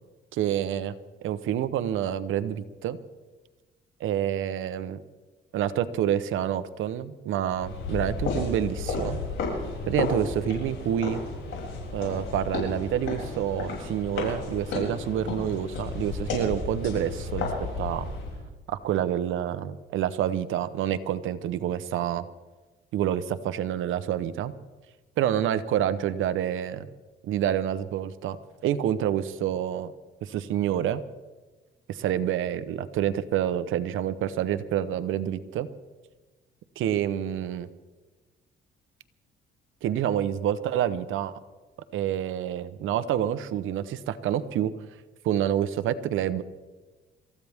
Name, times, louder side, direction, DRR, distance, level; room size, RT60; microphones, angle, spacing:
voice 1, 0.3-0.9 1.2-3.0 4.0-5.0 5.5-9.2 9.9-11.2 11.9-17.5 17.8-18.1 18.7-22.2 22.9-24.5 25.2-26.9 27.2-28.4 28.6-29.9 30.2-31.0 31.9-35.7 36.8-37.7 39.8-41.3 41.9-44.7 45.2-46.4, right 10 dB, 85° right, 13 dB, 1.0 m, -28 dB
sound 1, 7.5-18.4, left 3 dB, 80° left, 7.1 m, -32 dB
27.5 x 14.5 x 3.6 m, 1.2 s
cardioid pair, 90°, 20 cm